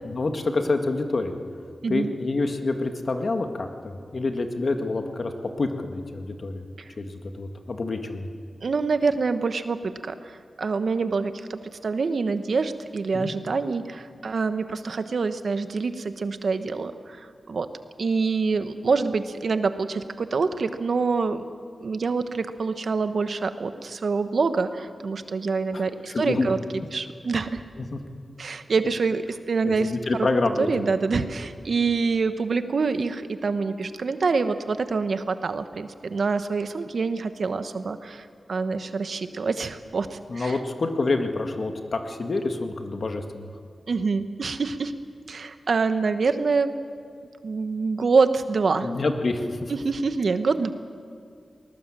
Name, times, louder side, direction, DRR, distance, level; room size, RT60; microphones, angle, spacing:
voice 1, 0.1-1.3 1.9-6.6 7.0-8.3 13.1-13.3 25.7-25.8 26.1-26.5 27.8-28.0 29.6-30.8 40.3-43.5 48.8-49.7, left 3 dB, 60° left, 5 dB, 1.9 m, -27 dB
voice 2, 8.6-17.7 18.0-21.4 21.8-27.6 28.4-29.9 30.6-40.6 43.9-44.9 45.3-46.7 47.4-48.9 49.7-50.7, right 4 dB, 70° right, 10 dB, 1.1 m, -26 dB
20.0 x 19.5 x 7.6 m, 2.2 s
cardioid pair, 50°, 0 cm